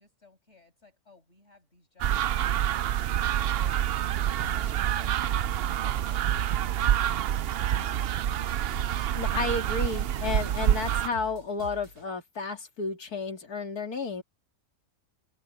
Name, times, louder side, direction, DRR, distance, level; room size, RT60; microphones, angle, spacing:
voice 1, 0.0-3.9 4.3-8.2, left 3 dB, 50° left, 6.5 m, -59 dB
sound 1, 2.0-11.1, right 11 dB, 85° right, 0.5 m, -27 dB
sound 2, 4.4-12.1, right 1 dB, 65° right, 4.9 m, -45 dB
voice 2, 9.1-14.2, left 4 dB, 85° left, 2.9 m, -32 dB
open air
omnidirectional pair, 1.6 m